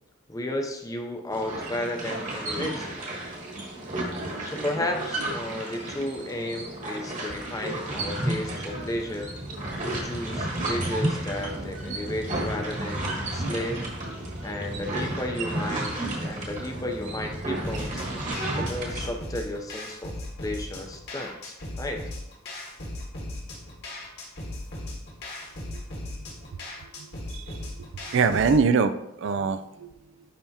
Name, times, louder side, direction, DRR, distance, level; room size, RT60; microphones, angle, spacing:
voice 1, 0.3-3.1 4.4-9.3 9.9-13.8 14.4-18.1 18.6-20.1 20.4-22.0, left 1 dB, 15° left, 4 dB, 0.6 m, -33 dB
sound 1, 1.3-19.1, right 1 dB, 35° right, 1.3 m, -32 dB
sound 2, 17.6-28.6, left 1 dB, 50° left, 1.4 m, -38 dB
voice 2, 27.3-28.9 29.2-29.9, right 5 dB, 60° right, 12 dB, 0.3 m, -24 dB
10.0 x 3.5 x 2.8 m, 0.85 s
head